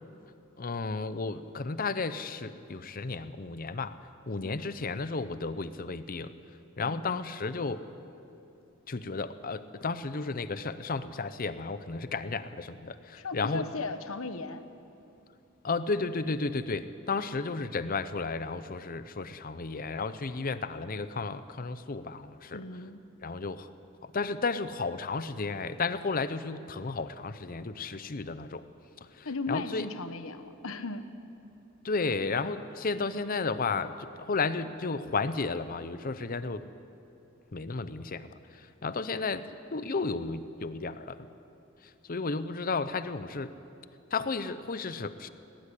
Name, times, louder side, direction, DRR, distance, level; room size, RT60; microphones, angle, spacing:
voice 1, 0.6-4.0 4.3-6.3 6.8-7.9 8.9-13.6 15.6-22.6 23.2-23.7 24.0-28.7 29.1-29.9 31.8-36.7 37.5-41.2 41.8-43.5 44.1-45.3, left 4 dB, 45° left, 13 dB, 0.7 m, -33 dB
voice 2, 4.4-4.7 6.8-7.2 13.1-14.6 22.5-23.0 29.2-31.1, left 3 dB, 80° left, 10 dB, 1.2 m, -37 dB
17.5 x 15.5 x 10.0 m, 2.7 s
head